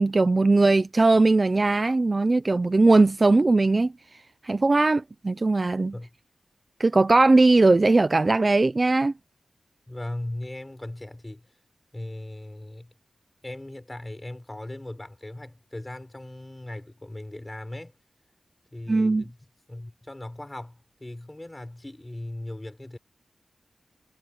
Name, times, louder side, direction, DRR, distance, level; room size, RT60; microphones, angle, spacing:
voice 1, 0.0-3.9 4.4-5.9 6.8-9.1 18.9-19.2, right 3 dB, 30° right, 0.5 m, -19 dB
voice 2, 9.9-11.5 11.9-12.9 13.4-17.9 18.7-19.4 19.7-23.0, left 1 dB, 15° left, 6.3 m, -38 dB
wide cardioid pair, 155°, 0 cm